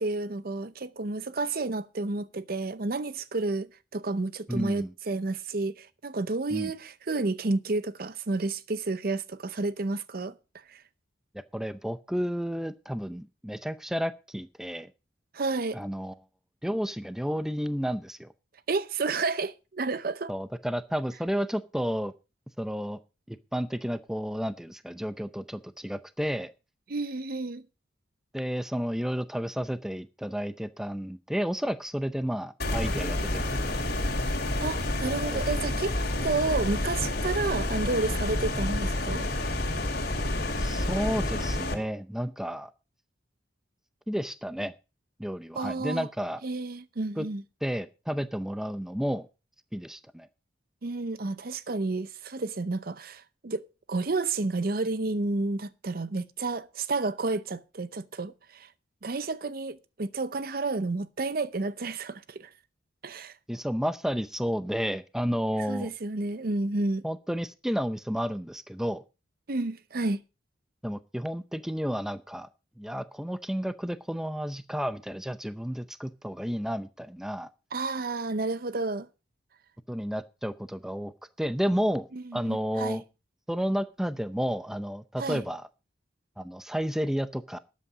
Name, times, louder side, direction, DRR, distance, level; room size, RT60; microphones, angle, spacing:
voice 1, 0.0-10.3 10.7-10.8 15.3-15.8 18.7-20.3 26.9-27.6 34.6-36.0 36.2-39.3 45.5-46.1 46.4-47.4 50.8-58.7 59.0-62.5 63.0-63.3 65.7-67.0 69.5-70.2 77.7-79.1 82.1-83.0 85.2-85.4, right 3 dB, 50° right, 0.7 m, -31 dB
voice 2, 4.5-4.9 6.5-6.7 11.5-14.9 15.7-16.1 16.6-18.3 20.3-22.1 22.6-23.0 23.3-26.5 28.3-34.0 35.3-35.4 40.6-42.7 44.1-44.7 45.2-46.4 47.2-47.3 47.6-49.3 49.7-50.3 63.5-65.9 67.0-69.0 70.8-72.5 72.8-77.5 79.9-81.1 81.4-83.0 83.5-85.7 86.4-87.6, equal, 5° right, 0.6 m, -31 dB
sound 1, 32.6-41.7, left 1 dB, 55° left, 2.4 m, -29 dB
13.0 x 8.5 x 5.0 m
head